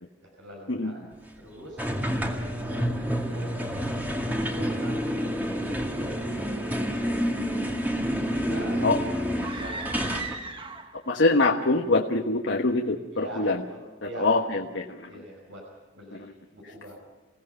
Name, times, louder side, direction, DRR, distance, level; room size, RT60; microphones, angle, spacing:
voice 1, 0.2-1.0 1.4-1.8 2.6-3.6 4.3-7.3 8.1-9.1 9.5-10.0 13.1-14.3 15.1-15.6 15.9-17.0, right 1 dB, 80° right, -1 dB, 5.7 m, -43 dB
sound 1, 1.8-10.4, equal, 10° right, 2.1 m, -29 dB
sound 2, 9.3-11.1, right 4 dB, 25° right, 1.3 m, -37 dB
voice 2, 10.9-13.6 14.0-15.2 16.1-16.3, left 2 dB, 70° left, 2 dB, 1.3 m, -24 dB
27.5 x 17.0 x 5.7 m, 1.4 s
head